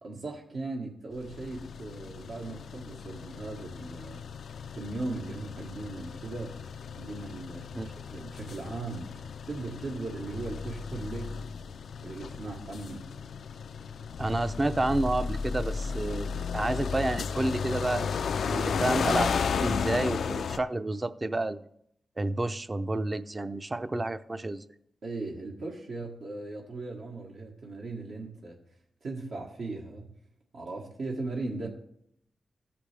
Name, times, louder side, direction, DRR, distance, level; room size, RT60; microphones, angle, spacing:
voice 1, 0.0-4.2 4.8-6.5 7.0-9.2 9.5-11.5 12.0-13.1 23.8-23.9 25.0-28.6 29.0-30.1 30.5-31.7, right 3 dB, 75° right, -1 dB, 1.5 m, -38 dB
sound 1, 1.2-20.6, left 6 dB, 80° left, 0.3 m, -34 dB
voice 2, 14.2-18.1 18.5-19.3 19.6-21.6 22.2-24.6, right 2 dB, 30° right, 13 dB, 0.5 m, -30 dB
15.0 x 5.1 x 3.3 m, 0.72 s
cardioid pair, 65°, 0 cm